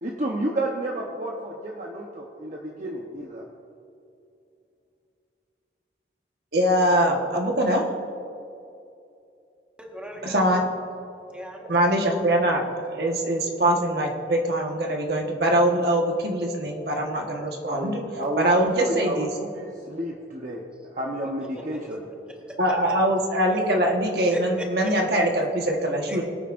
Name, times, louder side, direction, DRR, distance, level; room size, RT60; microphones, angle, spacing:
voice 1, 0.0-3.5 17.7-22.1, right 1 dB, 45° right, -1 dB, 0.9 m, -31 dB
voice 2, 6.5-7.8 10.2-10.7 11.7-18.0 18.4-19.3 22.6-26.2, right 1 dB, 65° right, 1 dB, 1.4 m, -23 dB
voice 3, 9.8-10.4 11.3-11.9 19.8-19.9 21.5-22.0 22.4-22.6 23.5-23.6 24.3-25.0 26.1-26.2, equal, 5° right, -1 dB, 1.4 m, -37 dB
22.5 x 9.0 x 2.6 m, 2.6 s
head